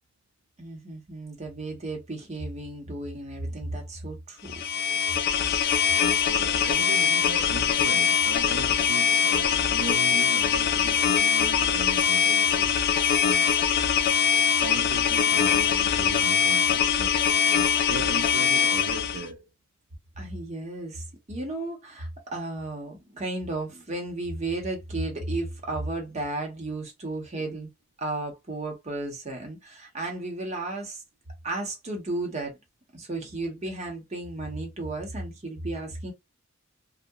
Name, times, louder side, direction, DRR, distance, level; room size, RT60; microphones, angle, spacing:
voice 1, 0.6-4.6 20.2-27.7 28.0-31.0 31.4-32.6 32.9-36.1, right 2 dB, 35° right, 0.9 m, -34 dB
sound 1, 4.5-19.3, left 7 dB, 50° left, 0.3 m, -23 dB
voice 2, 6.3-12.8 13.3-13.7 14.6-17.3 17.8-19.4, right 4 dB, 80° right, 0.4 m, -38 dB
2.7 x 2.1 x 2.2 m
head